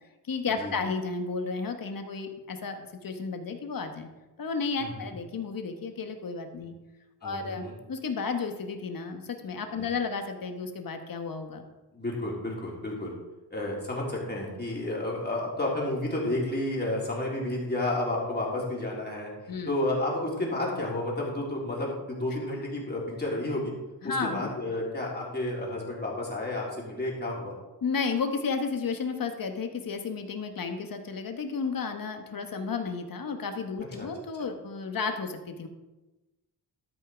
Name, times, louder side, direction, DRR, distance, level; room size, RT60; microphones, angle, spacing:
voice 1, 0.3-4.1 4.4-6.7 7.2-11.6 19.5-19.7 24.0-24.5 27.8-35.7, left 5 dB, 55° left, 6 dB, 1.4 m, -32 dB
voice 2, 7.2-7.7 9.8-9.9 11.9-13.1 13.5-23.7 24.0-27.5 34.0-34.1, left 1 dB, 25° left, -4 dB, 3.7 m, -31 dB
12.5 x 5.7 x 5.2 m, 1.1 s
cardioid pair, 90°, 41 cm